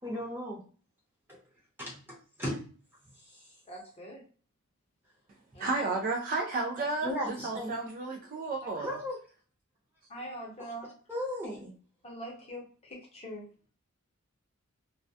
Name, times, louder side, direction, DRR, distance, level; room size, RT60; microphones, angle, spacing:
voice 1, 0.0-0.6 1.3-1.4 1.8-1.9 2.4-2.6 3.3-3.5 7.0-7.7 8.8-9.2 11.1-11.7, left 1 dB, 10° right, -5 dB, 0.9 m, -35 dB
voice 2, 3.7-4.2 5.5-5.7 8.6-8.7 10.1-10.9 12.0-13.5, right 1 dB, 25° left, -2 dB, 0.7 m, -43 dB
voice 3, 5.6-9.0, right 3 dB, 40° right, 1 dB, 0.3 m, -32 dB
2.3 x 2.1 x 2.6 m, 0.40 s
head